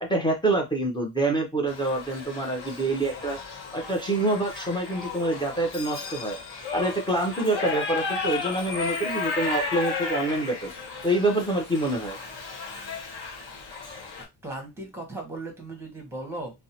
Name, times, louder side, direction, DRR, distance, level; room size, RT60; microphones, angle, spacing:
voice 1, 0.0-3.4 3.7-6.4 6.7-10.7 11.0-12.2, right 2 dB, 10° left, 0.6 m, -26 dB
Shout / Livestock farm animals working animals, 1.7-14.2, left 4 dB, 60° left, 1.2 m, -34 dB
voice 2, 14.4-16.6, right 2 dB, 5° right, 1.0 m, -37 dB
2.6 x 2.1 x 2.8 m
cardioid pair, 135°, 46 cm